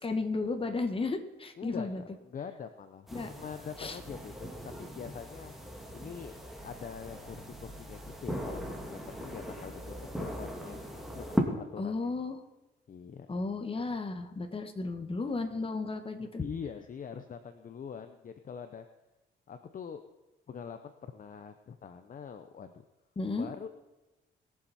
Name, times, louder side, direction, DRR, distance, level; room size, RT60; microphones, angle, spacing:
voice 1, 0.0-2.0 3.1-3.3 3.8-4.0 11.8-12.4 13.3-16.4 23.1-23.5, left 3 dB, 25° left, 6 dB, 1.6 m, -34 dB
voice 2, 1.6-4.5 4.8-5.5 5.9-6.3 6.6-10.8 11.1-12.1 12.9-13.3 16.2-18.9 19.5-20.0 20.5-22.8 23.4-23.7, left 7 dB, 45° left, 9 dB, 0.8 m, -44 dB
sound 1, 3.1-11.4, equal, ahead, 2.3 m, -39 dB
21.0 x 7.3 x 4.3 m, 1.1 s
cardioid pair, 90°, 20 cm